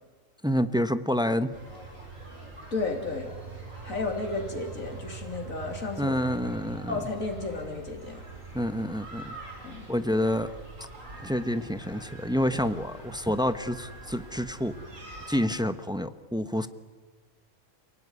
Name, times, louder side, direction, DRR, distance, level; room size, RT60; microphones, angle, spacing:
voice 1, 0.4-1.5 6.0-7.0 8.5-9.4 9.9-10.5 11.2-14.7 15.3-16.7, equal, 5° right, 11 dB, 0.6 m, -28 dB
sound 1, 1.5-15.4, right 3 dB, 70° right, 5.3 m, -43 dB
voice 2, 2.7-3.3 3.8-6.2 6.9-8.2 9.6-9.9, left 3 dB, 80° left, 2 dB, 3.7 m, -33 dB
28.5 x 18.0 x 9.7 m, 1.4 s
omnidirectional pair, 1.4 m